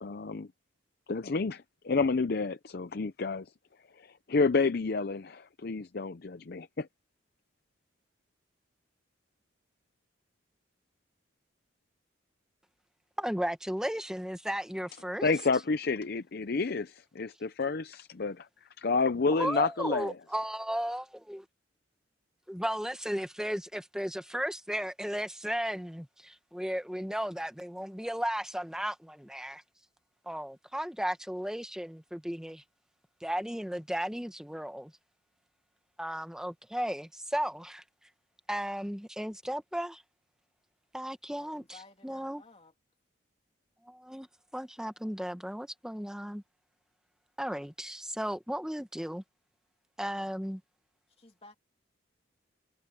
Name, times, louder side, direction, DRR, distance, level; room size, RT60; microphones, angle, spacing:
voice 1, 0.0-0.5 1.1-3.5 3.9-6.9 15.2-20.1, left 4 dB, 50° left, 0.6 m, -30 dB
voice 2, 13.2-15.3 19.4-21.4 22.5-29.6 30.2-32.6 33.2-34.9 36.0-37.8 38.5-40.0 40.9-42.4 43.8-44.3 44.5-46.4 47.4-49.2 50.0-50.6, equal, 5° right, 1.1 m, -35 dB
voice 3, 41.3-42.7 51.2-51.6, left 3 dB, 30° left, 3.0 m, -55 dB
head